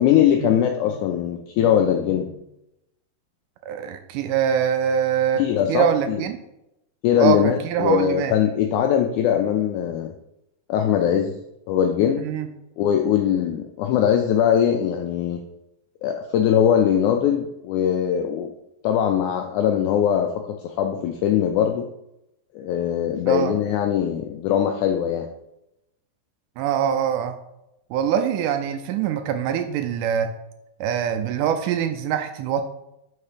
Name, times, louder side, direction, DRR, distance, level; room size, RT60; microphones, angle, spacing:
voice 1, 0.0-2.4 5.4-6.2 7.0-10.1 10.7-11.4 11.7-12.2 12.8-15.4 16.0-18.5 18.8-21.9 22.5-25.3, left 9 dB, 85° left, 4 dB, 1.7 m, -21 dB
voice 2, 3.6-5.4 5.7-6.4 7.2-8.3 12.2-12.5 23.2-23.5 26.6-27.4 27.9-30.3 30.8-32.7, right 8 dB, 80° right, 8 dB, 2.0 m, -23 dB
5.6 x 4.4 x 5.0 m, 0.86 s
omnidirectional pair, 4.0 m